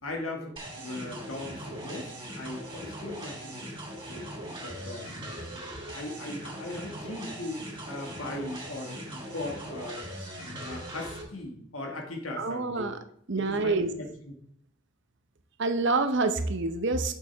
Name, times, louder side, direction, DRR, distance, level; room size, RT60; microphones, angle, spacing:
voice 1, 0.0-3.7 4.1-10.0 10.4-12.9 13.4-14.3, left 2 dB, 85° left, 1 dB, 1.9 m, -39 dB
sound 1, 0.6-11.2, right 1 dB, 25° right, 3.3 m, -40 dB
voice 2, 12.4-13.0 13.3-13.9 15.6-17.1, right 3 dB, 60° right, 8 dB, 0.8 m, -27 dB
8.5 x 6.7 x 3.5 m, 0.65 s
head